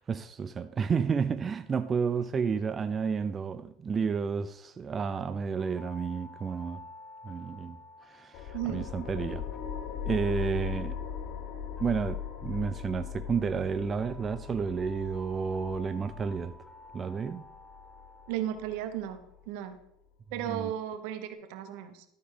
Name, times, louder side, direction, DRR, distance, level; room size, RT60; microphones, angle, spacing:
voice 1, 0.0-6.9 7.2-9.4 10.1-11.0 11.8-16.5 16.9-17.4 20.4-20.7, right 6 dB, 30° right, 0.4 m, -31 dB
sound 1, 5.6-19.5, left 2 dB, 10° left, 0.7 m, -53 dB
sound 2, 8.3-19.4, left 8 dB, 65° left, 1.0 m, -39 dB
voice 2, 8.5-8.9 18.3-19.2 19.5-19.8 20.3-22.0, right 11 dB, 75° right, 1.1 m, -35 dB
13.0 x 4.5 x 5.0 m
supercardioid pair, 110°, 0 cm